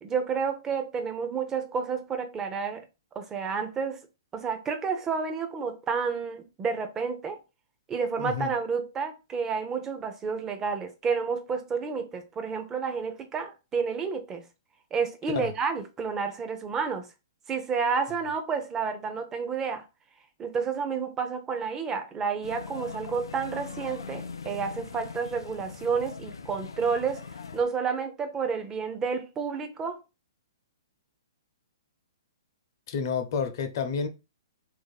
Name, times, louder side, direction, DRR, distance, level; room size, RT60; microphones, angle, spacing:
voice 1, 0.0-2.8 3.1-4.1 4.3-7.4 7.9-14.4 14.9-17.1 17.5-19.8 20.4-27.2 27.5-30.0, right 5 dB, 20° right, 0.7 m, -30 dB
voice 2, 8.2-8.5 15.3-15.5 32.9-34.1, left 6 dB, 55° left, 0.8 m, -30 dB
sound 1, 22.4-27.6, left 5 dB, 90° left, 0.5 m, -41 dB
3.0 x 2.7 x 4.0 m
hypercardioid pair, 140°, 2 cm